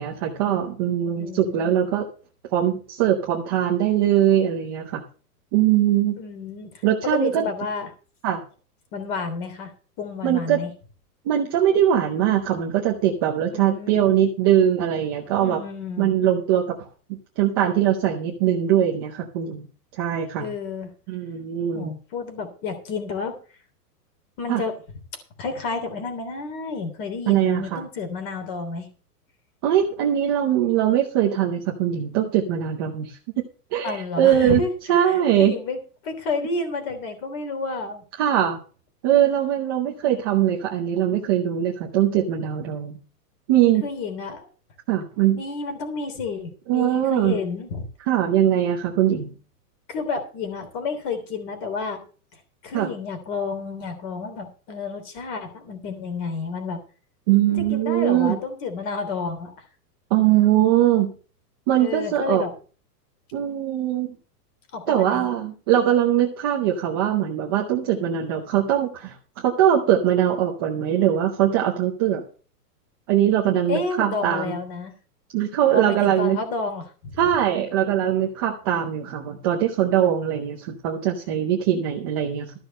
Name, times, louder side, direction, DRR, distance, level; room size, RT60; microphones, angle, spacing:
voice 1, 0.0-2.0 2.5-5.0 5.5-6.2 6.8-7.4 8.2-8.4 10.2-10.6 11.3-15.6 16.0-16.9 17.4-19.6 20.0-20.5 21.1-21.9 24.5-24.6 27.3-27.8 29.6-33.2 33.7-34.6 34.9-35.5 38.2-38.6 39.0-42.9 43.5-43.8 44.9-45.4 46.7-47.4 48.1-49.3 52.7-52.9 57.3-58.4 60.1-61.1 61.7-62.4 63.3-64.1 64.9-72.2 73.1-74.5 75.3-76.4 77.2-82.5, right 11 dB, 15° right, 0 dB, 0.6 m, -21 dB
voice 2, 1.2-1.9 6.2-7.9 8.9-10.7 13.5-14.0 15.4-16.1 20.4-20.9 21.7-23.4 24.4-24.7 25.4-28.9 33.8-34.7 35.0-38.0 43.8-44.5 45.3-47.8 49.9-52.0 52.6-56.8 57.6-59.5 61.8-62.5 64.7-65.3 73.7-74.9 75.7-77.1, left 4 dB, 35° left, 7 dB, 3.3 m, -30 dB
13.5 x 6.2 x 6.5 m, 0.38 s
supercardioid pair, 175°, 48 cm